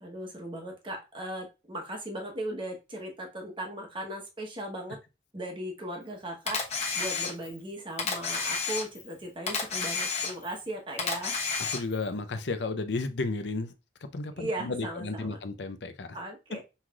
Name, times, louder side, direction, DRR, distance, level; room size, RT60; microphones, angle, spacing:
voice 1, 0.0-5.0 5.3-11.3 14.4-15.4 16.1-16.6, right 1 dB, 30° right, 1.0 m, -38 dB
Camera, 6.5-7.6 8.0-9.1 9.5-10.6 11.0-12.0, left 4 dB, 40° left, 1.1 m, -31 dB
voice 2, 11.6-13.7 14.1-16.2, left 3 dB, 75° left, 0.6 m, -33 dB
5.6 x 3.1 x 2.4 m
head